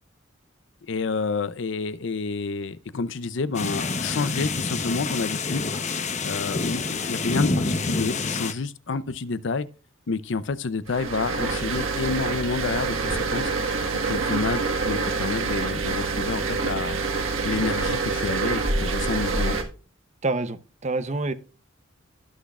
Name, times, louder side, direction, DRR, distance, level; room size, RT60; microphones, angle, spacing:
voice 1, 0.9-5.7 6.2-9.7 10.1-13.5 14.0-17.0 17.4-19.6, left 4 dB, 65° left, 0.6 m, -29 dB
sound 1, 3.5-8.5, left 3 dB, 35° left, 0.9 m, -27 dB
sound 2, 10.9-19.6, right 3 dB, 90° right, 1.6 m, -26 dB
voice 2, 20.2-21.3, right 2 dB, 35° right, 0.7 m, -27 dB
17.0 x 6.3 x 2.4 m
head